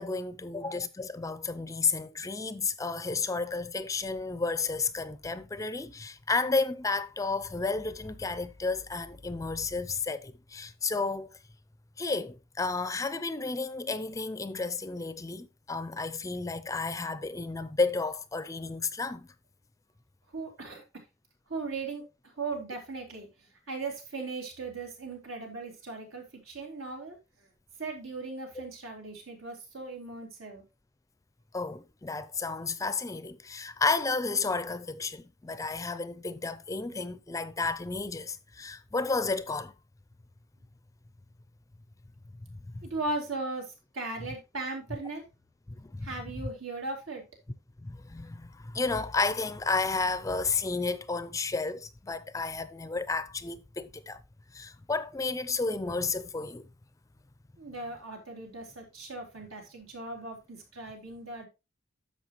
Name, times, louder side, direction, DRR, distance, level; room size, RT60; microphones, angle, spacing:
voice 1, 0.0-11.3 12.0-19.3 28.6-28.7 31.5-39.7 42.7-42.8 45.8-46.1 47.8-54.2 54.5-56.7, left 4 dB, 15° left, 0.4 m, -32 dB
voice 2, 20.3-20.8 21.5-22.0 22.4-23.3 23.7-27.2 27.8-30.6 42.8-45.2 46.0-47.2 57.6-61.5, right 3 dB, 90° right, 3.5 m, -38 dB
10.5 x 7.0 x 3.0 m
head